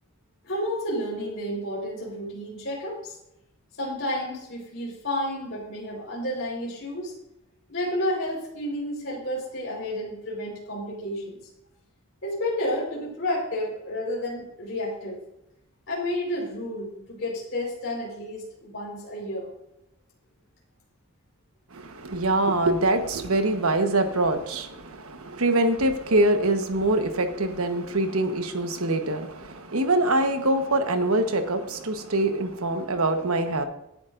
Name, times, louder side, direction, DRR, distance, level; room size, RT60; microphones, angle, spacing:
voice 1, 0.4-3.2 3.8-7.1 7.7-11.4 12.2-15.2 15.9-19.5, left 1 dB, 55° left, -4 dB, 4.4 m, -31 dB
voice 2, 21.7-33.6, right 2 dB, 75° right, 7 dB, 1.2 m, -24 dB
17.0 x 10.5 x 2.6 m, 0.86 s
head